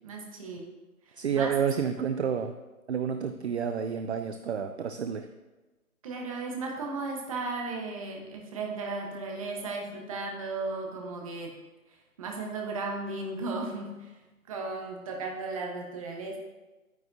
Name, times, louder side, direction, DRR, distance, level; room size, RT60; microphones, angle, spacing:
voice 1, 0.0-0.7 1.1-1.5 6.0-11.5 12.2-14.1 14.5-16.4, right 3 dB, 25° right, 1 dB, 1.0 m, -35 dB
voice 2, 1.2-2.6 2.9-5.3, right 7 dB, 50° right, 9 dB, 0.5 m, -29 dB
10.5 x 9.3 x 2.6 m, 1.1 s
figure-of-eight pair, 150°, 44 cm